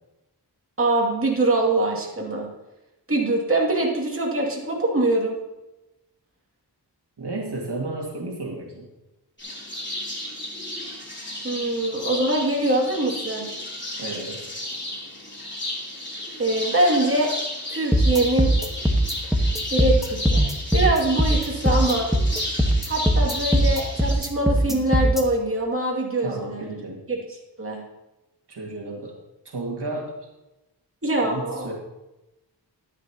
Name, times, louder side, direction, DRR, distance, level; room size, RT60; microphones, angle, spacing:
voice 1, 0.8-2.5 3.1-5.4 11.4-13.5 16.4-17.3 17.7-18.5 19.7-20.4 20.7-22.1 22.9-26.7 27.1-27.8 31.0-31.7, right 2 dB, 35° right, -3 dB, 2.3 m, -23 dB
voice 2, 7.2-8.9 14.0-14.5 26.2-27.0 28.5-29.2 29.5-30.2 31.2-31.7, right 2 dB, 75° right, -2 dB, 1.9 m, -32 dB
sound 1, 9.4-24.1, left 1 dB, 25° left, 3.1 m, -33 dB
sound 2, 17.9-25.2, right 1 dB, ahead, 1.3 m, -20 dB
13.0 x 10.5 x 2.9 m, 0.99 s
wide cardioid pair, 100°, 41 cm